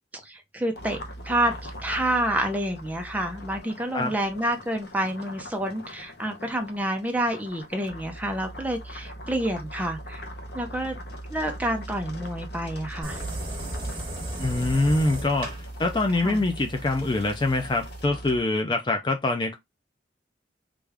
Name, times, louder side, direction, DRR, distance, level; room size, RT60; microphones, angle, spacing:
voice 1, 0.1-1.0 1.2-10.3 10.5-11.0 11.3-13.2 16.2-16.4, right 1 dB, 10° right, 0.7 m, -28 dB
sound 1, 0.7-18.4, equal, 60° left, 0.8 m, -40 dB
sound 2, 13.0-18.0, right 1 dB, 30° right, 1.2 m, -36 dB
voice 2, 14.4-19.6, left 2 dB, 25° left, 0.4 m, -24 dB
3.3 x 2.4 x 3.4 m
head